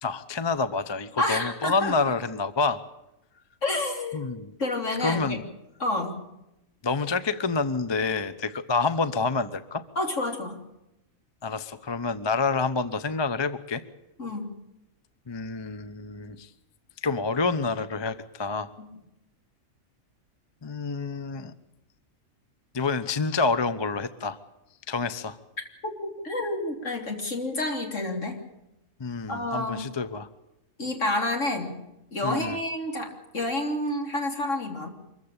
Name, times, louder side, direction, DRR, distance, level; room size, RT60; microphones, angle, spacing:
voice 1, 0.0-2.8 4.1-4.5 5.0-5.4 6.8-9.8 11.4-13.8 15.3-16.5 17.0-18.7 20.6-21.5 22.7-24.4 24.9-25.4 29.0-30.3 32.2-32.6, left 4 dB, 25° left, 13 dB, 0.8 m, -28 dB
voice 2, 1.2-1.9 3.6-4.2 4.6-5.4 5.8-6.2 10.0-10.6 14.2-14.5 26.0-28.4 29.3-29.8 30.8-31.8 32.1-34.9, left 2 dB, 65° left, 3 dB, 3.6 m, -29 dB
24.5 x 15.0 x 8.8 m, 0.89 s
omnidirectional pair, 1.4 m